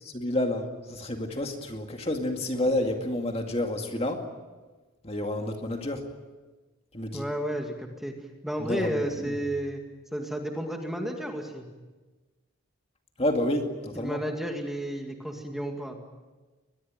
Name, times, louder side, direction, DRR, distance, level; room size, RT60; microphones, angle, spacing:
voice 1, 0.1-4.3 5.0-6.1 6.9-7.3 8.6-9.3 13.2-14.2, left 1 dB, 30° left, 4 dB, 2.2 m, -29 dB
voice 2, 7.1-9.8 10.1-11.7 14.0-16.0, equal, ahead, 2 dB, 2.0 m, -32 dB
22.5 x 21.5 x 9.1 m, 1.3 s
head